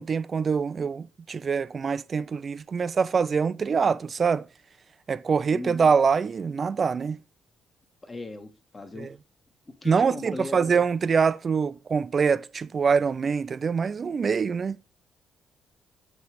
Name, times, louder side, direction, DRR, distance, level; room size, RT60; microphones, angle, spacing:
voice 1, 0.0-4.4 5.1-7.2 9.0-9.1 9.8-14.8, right 5 dB, 40° right, 0.3 m, -24 dB
voice 2, 8.0-9.1 9.8-10.8, left 2 dB, 25° left, 1.5 m, -38 dB
8.0 x 3.3 x 4.9 m
cardioid pair, 90°, 0 cm